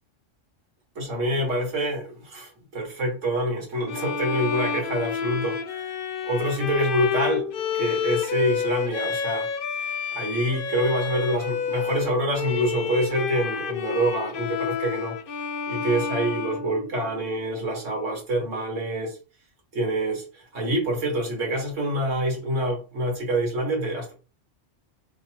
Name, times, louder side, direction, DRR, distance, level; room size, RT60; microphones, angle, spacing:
voice 1, 0.9-5.9 6.2-9.5 10.1-15.2 15.7-19.2 19.7-24.1, right 1 dB, 80° right, 1.7 m, -26 dB
Bowed string instrument, 3.9-17.3, left 7 dB, 60° left, 0.6 m, -30 dB
3.3 x 2.4 x 4.4 m
omnidirectional pair, 1.3 m